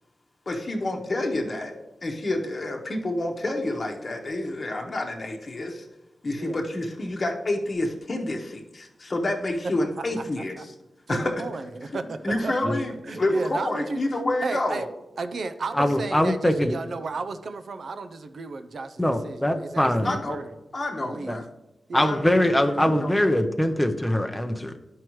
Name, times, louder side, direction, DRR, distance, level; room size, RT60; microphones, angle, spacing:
voice 1, 0.5-1.7 2.0-5.8 6.2-10.5 11.1-11.3 12.2-12.9 13.2-14.9 20.0-20.4 20.7-21.4 22.0-23.1, left 2 dB, 40° left, 0 dB, 1.0 m, -28 dB
voice 2, 11.1-12.8 13.1-14.0 14.4-14.9 15.2-20.5 21.0-21.4 21.9-22.1, right 3 dB, 65° right, 9 dB, 0.5 m, -33 dB
voice 3, 15.7-16.7 19.0-20.1 21.3-21.4 21.9-24.8, left 1 dB, 5° left, 6 dB, 0.6 m, -22 dB
12.5 x 4.7 x 3.1 m, 0.96 s
wide cardioid pair, 95°, 0 cm